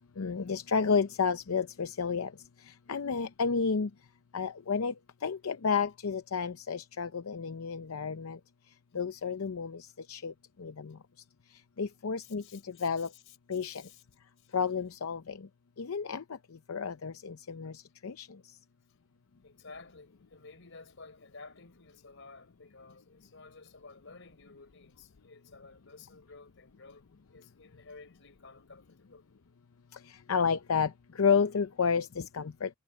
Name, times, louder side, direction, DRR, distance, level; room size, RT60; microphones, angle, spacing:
voice 1, 0.2-2.3 2.9-3.9 4.3-4.9 5.2-8.4 8.9-10.3 10.6-10.9 11.8-13.1 13.5-13.8 14.5-15.4 15.8-16.2 16.7-17.7 18.0-18.3 30.3-30.9 31.2-32.7, left 5 dB, 85° left, 0.6 m, -31 dB
voice 2, 12.2-14.0 14.4-14.6 19.4-29.3, left 4 dB, 60° left, 4.4 m, -53 dB
head